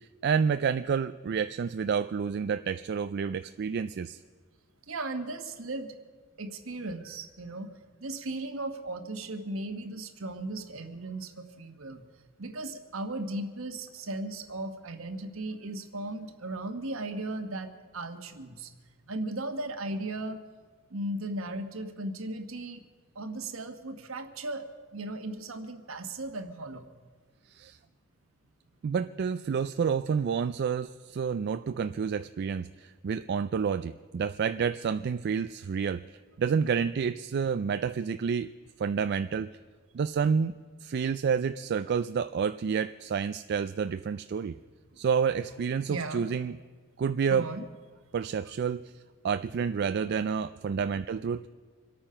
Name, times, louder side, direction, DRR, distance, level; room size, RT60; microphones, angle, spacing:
voice 1, 0.2-4.2 27.5-27.8 28.8-36.0 36.4-38.5 38.8-39.5 39.9-40.5 40.8-44.6 45.0-46.6 47.0-47.5 48.1-48.8 49.2-51.4, right 6 dB, 50° right, 11 dB, 0.3 m, -29 dB
voice 2, 4.9-6.0 6.4-7.7 8.0-12.0 12.4-18.7 19.1-20.4 20.9-22.8 23.1-26.8 45.9-46.2 47.3-47.6, right 2 dB, 70° right, 7 dB, 1.3 m, -36 dB
26.0 x 8.9 x 5.6 m, 1.5 s
head